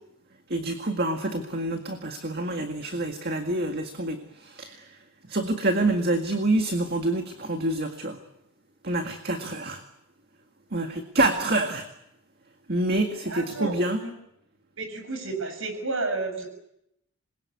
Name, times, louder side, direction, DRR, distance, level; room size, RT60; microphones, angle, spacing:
voice 1, 0.5-4.9 5.3-8.2 8.8-9.8 10.7-11.9 12.7-14.0, right 2 dB, 45° right, 5 dB, 1.9 m, -27 dB
voice 2, 13.3-13.7 14.0-14.1 14.8-16.5, right 3 dB, 70° right, 6 dB, 6.6 m, -31 dB
27.0 x 22.5 x 8.4 m, 0.81 s
head